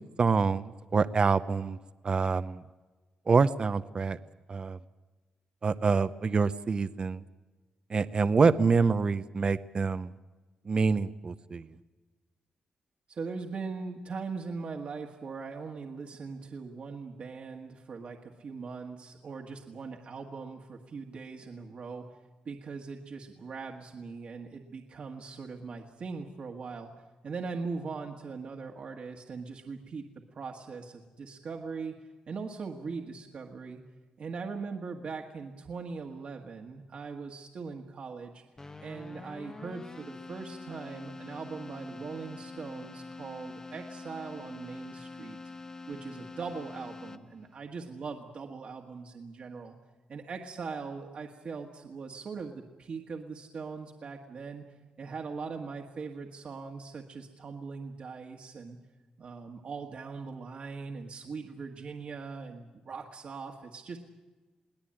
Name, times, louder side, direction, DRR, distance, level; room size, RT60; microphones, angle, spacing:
voice 1, 0.2-1.8 2.0-2.6 3.3-4.2 4.5-4.8 5.6-7.2 7.9-10.1 10.7-11.7, right 4 dB, 40° right, 13 dB, 0.7 m, -26 dB
voice 2, 13.1-22.1 22.4-26.9 27.2-32.0 32.3-33.8 34.2-38.4 38.8-45.4 45.9-49.8 50.1-54.6 55.0-58.8 59.2-64.0, right 4 dB, 60° right, 1 dB, 1.7 m, -40 dB
Keyboard (musical), 38.6-47.5, left 3 dB, 25° left, 1.0 m, -45 dB
22.5 x 17.5 x 8.8 m, 1.2 s
cardioid pair, 100°, 2 cm